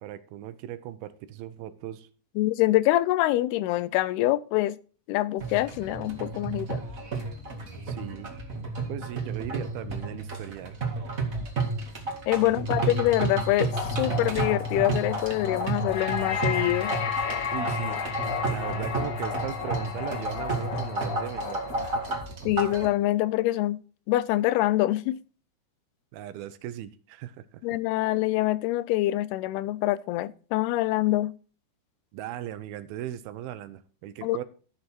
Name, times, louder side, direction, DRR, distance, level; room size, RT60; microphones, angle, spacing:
voice 1, 0.0-2.1 7.9-8.3 8.9-10.8 12.4-12.7 17.5-18.0 18.3-22.2 26.1-27.6 32.1-34.4, right 12 dB, 80° right, 2.5 m, -38 dB
voice 2, 2.4-4.8 5.1-6.8 12.3-16.9 22.5-23.8 24.1-25.2 27.6-31.3 34.2-34.4, left 16 dB, 85° left, 2.6 m, -25 dB
sound 1, 5.4-22.9, right 3 dB, 30° right, 1.5 m, -32 dB
sound 2, 13.7-22.1, left 6 dB, 50° left, 2.0 m, -33 dB
13.0 x 6.7 x 4.5 m
omnidirectional pair, 4.5 m